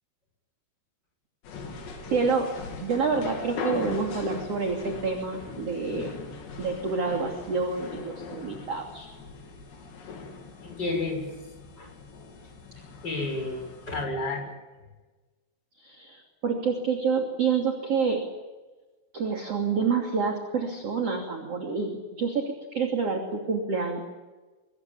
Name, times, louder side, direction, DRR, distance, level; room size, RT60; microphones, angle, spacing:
sound 1, 1.4-14.0, left 4 dB, 60° left, 5.2 m, -40 dB
voice 1, 2.1-2.5 2.8-6.1 6.6-9.1 12.8-12.9 15.8-18.2 19.1-24.1, right 5 dB, 35° right, 2 dB, 3.0 m, -28 dB
voice 2, 10.6-11.2 11.8-11.9 13.0-14.5, left 2 dB, 20° left, 3 dB, 7.5 m, -31 dB
26.0 x 23.0 x 7.2 m, 1.2 s
omnidirectional pair, 6.0 m